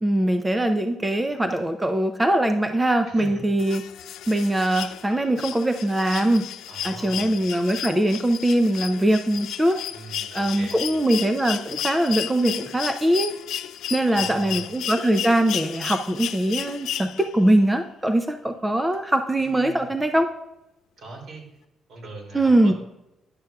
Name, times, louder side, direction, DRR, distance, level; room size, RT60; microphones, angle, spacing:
voice 1, 0.0-3.8 4.3-6.5 6.8-9.8 10.3-13.3 13.9-20.3 22.3-22.7, right 1 dB, 15° right, 7 dB, 0.5 m, -22 dB
voice 2, 3.0-3.5 6.7-7.4 9.9-10.9 14.1-14.7 19.4-19.9 21.0-21.4 21.9-22.7, right 3 dB, 70° right, 0 dB, 2.6 m, -41 dB
sound 1, 3.6-17.5 18.9-19.0, left 11 dB, 80° left, 0.3 m, -33 dB
10.5 x 6.4 x 2.3 m, 0.91 s
cardioid pair, 90°, 0 cm